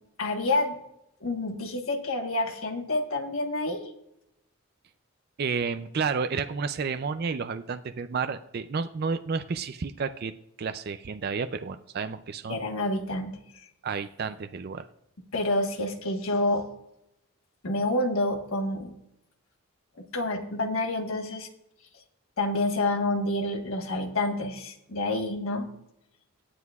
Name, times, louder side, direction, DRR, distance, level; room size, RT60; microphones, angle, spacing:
voice 1, 0.2-0.8 1.2-3.8 12.5-13.7 15.3-16.6 17.6-18.9 20.1-21.5 22.4-25.7, left 2 dB, 70° left, 4 dB, 1.3 m, -28 dB
voice 2, 5.4-10.3 10.6-12.6 13.8-14.9, right 5 dB, 45° right, 10 dB, 0.4 m, -31 dB
17.5 x 9.4 x 2.4 m, 0.82 s
head